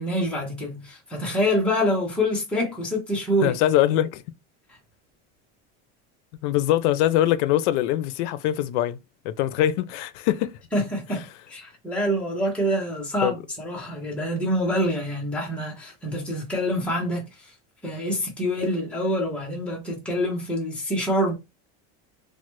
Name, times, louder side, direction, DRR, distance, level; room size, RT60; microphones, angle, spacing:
voice 1, 0.0-3.6 10.7-17.5 17.8-21.4, equal, 5° left, 0.6 m, -26 dB
voice 2, 3.4-4.2 6.4-9.0 9.2-10.5 13.2-13.3, left 13 dB, 70° left, 0.5 m, -22 dB
3.1 x 2.1 x 3.0 m
cardioid pair, 175°, 36 cm